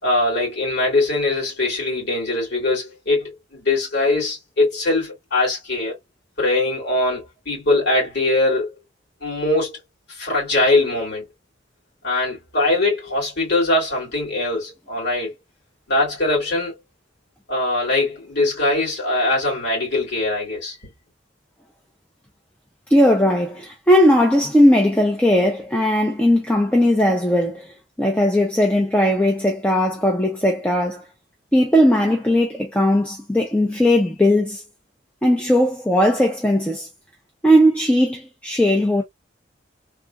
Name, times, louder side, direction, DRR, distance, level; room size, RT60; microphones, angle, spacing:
voice 1, 0.0-6.0 6.4-8.7 9.2-9.8 10.2-11.3 12.0-15.3 15.9-16.7 17.5-20.8, left 2 dB, 65° left, 2.5 m, -21 dB
voice 2, 22.9-31.0 31.5-34.6 35.2-36.9 37.4-39.0, equal, 5° left, 0.6 m, -18 dB
3.6 x 2.6 x 2.3 m
head